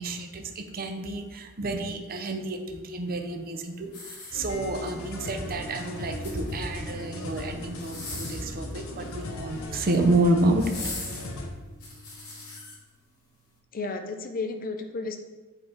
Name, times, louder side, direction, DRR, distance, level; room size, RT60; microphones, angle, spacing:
voice 1, 0.0-10.9, right 2 dB, 40° right, 4 dB, 0.7 m, -29 dB
sound 1, 3.9-4.9 6.0-6.8 7.7-8.5 9.6-10.1 10.6-12.8 13.3-13.5, left 3 dB, 85° left, 2.2 m, -40 dB
sound 2, 4.3-11.5, left 2 dB, 70° left, 0.9 m, -38 dB
sound 3, 5.4-12.6, equal, 75° right, 1.1 m, -46 dB
voice 2, 13.7-15.2, left 3 dB, 40° left, 6 dB, 0.6 m, -32 dB
7.8 x 3.9 x 4.4 m, 1.2 s
head